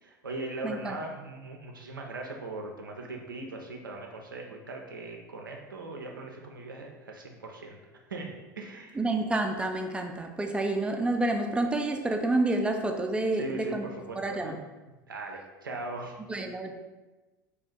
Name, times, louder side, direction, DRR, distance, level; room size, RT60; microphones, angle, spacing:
voice 1, 0.0-7.8 8.1-9.1 13.3-14.6 14.9-16.2, right 2 dB, 90° right, 1 dB, 0.4 m, -40 dB
voice 2, 0.6-1.0 9.0-13.9 14.2-14.5 16.3-16.7, right 2 dB, 10° right, 4 dB, 0.3 m, -29 dB
2.4 x 2.3 x 3.5 m, 1.1 s
figure-of-eight pair, 75°, 11 cm